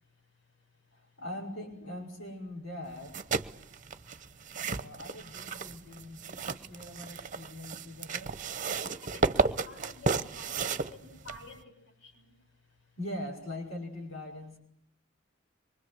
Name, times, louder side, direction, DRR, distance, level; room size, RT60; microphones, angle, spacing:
voice 1, 0.9-3.1 4.6-8.4 13.0-14.6, left 1 dB, 85° left, 0 dB, 6.0 m, -42 dB
sound 1, 3.0-11.6, right 4 dB, 40° right, 1.0 m, -33 dB
voice 2, 8.8-11.6, left 2 dB, 70° left, 5 dB, 7.0 m, -50 dB
25.0 x 23.5 x 8.0 m, 0.68 s
head